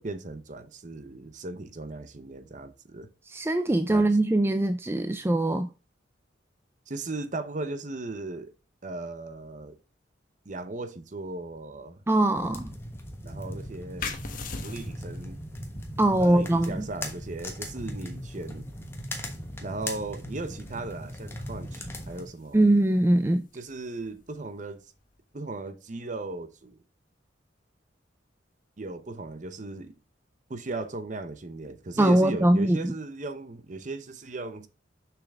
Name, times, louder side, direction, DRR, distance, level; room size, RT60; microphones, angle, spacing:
voice 1, 0.0-3.1 3.9-4.1 6.9-8.5 8.8-9.8 10.4-12.0 13.2-14.0 14.6-15.4 16.2-18.7 19.6-22.6 23.5-24.9 25.3-26.8 28.8-29.9 30.5-34.7, right 2 dB, 40° right, 0.7 m, -37 dB
voice 2, 3.3-5.7 12.1-12.7 16.0-16.9 22.5-23.4 32.0-32.9, right 1 dB, 15° right, 0.3 m, -22 dB
sound 1, 12.4-22.2, left 1 dB, 15° left, 1.1 m, -38 dB
sound 2, 14.0-25.3, left 4 dB, 45° left, 1.1 m, -45 dB
6.7 x 6.0 x 3.5 m
head